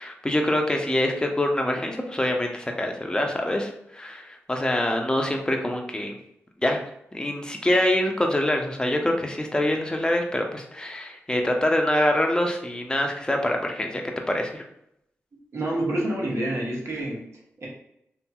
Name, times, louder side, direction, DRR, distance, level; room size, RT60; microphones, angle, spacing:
voice 1, 0.0-6.2 6.6-6.8 7.1-14.0 14.3-14.6, left 1 dB, 15° left, 2 dB, 0.6 m, -25 dB
voice 2, 15.5-17.3 17.6-17.7, right 1 dB, 60° right, -3 dB, 1.1 m, -27 dB
2.8 x 2.7 x 2.3 m, 0.76 s
cardioid pair, 45°, 5 cm